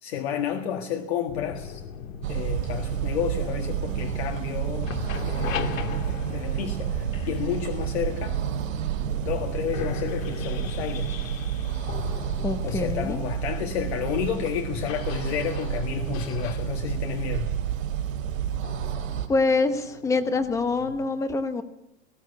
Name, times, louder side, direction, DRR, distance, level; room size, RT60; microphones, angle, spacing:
voice 1, 0.0-1.8 2.3-5.0 5.2-8.4 9.2-11.1 12.6-17.5, left 8 dB, 50° left, 4 dB, 1.8 m, -31 dB
sound 1, 1.3-4.5 4.7-8.7 9.3-9.4 9.7-21.1, left 7 dB, 75° left, 2.6 m, -39 dB
sound 2, 2.2-19.3, right 9 dB, 75° right, 4.0 m, -30 dB
voice 2, 12.4-13.2 19.3-21.6, left 3 dB, 10° left, 10 dB, 0.9 m, -25 dB
19.5 x 16.5 x 8.3 m, 0.87 s
supercardioid pair, 170°, 40 cm